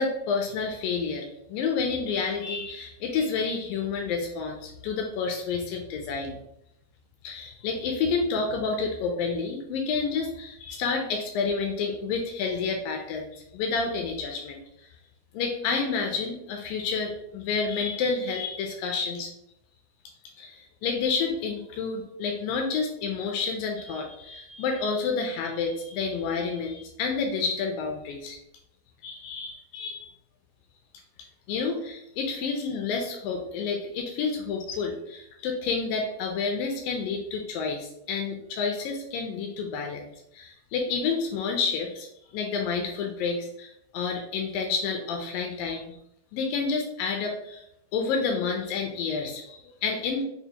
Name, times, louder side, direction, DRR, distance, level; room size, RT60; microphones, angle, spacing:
voice 1, 0.0-6.4 7.2-14.6 15.3-19.3 20.4-28.4 29.0-30.1 31.5-40.0 40.3-42.1 42.3-46.0 46.3-47.6 47.9-50.2, left 5 dB, 80° left, 2 dB, 2.0 m, -29 dB
5.8 x 2.0 x 2.8 m, 0.79 s
omnidirectional pair, 4.3 m